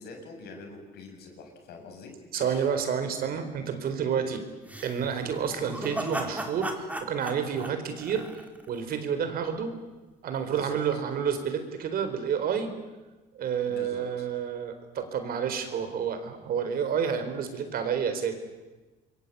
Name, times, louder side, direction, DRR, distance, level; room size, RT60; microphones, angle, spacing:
voice 1, 0.0-2.7 10.5-11.0 13.7-14.3, left 3 dB, 75° left, 3 dB, 7.2 m, -45 dB
voice 2, 2.3-4.4 4.8-8.3 8.7-9.8 10.2-12.7 13.3-18.3, right 7 dB, 60° right, 8 dB, 4.3 m, -29 dB
sound 1, 4.7-8.8, right 1 dB, 10° right, 3.5 m, -36 dB
27.0 x 22.5 x 8.6 m, 1.2 s
cardioid pair, 110°, 17 cm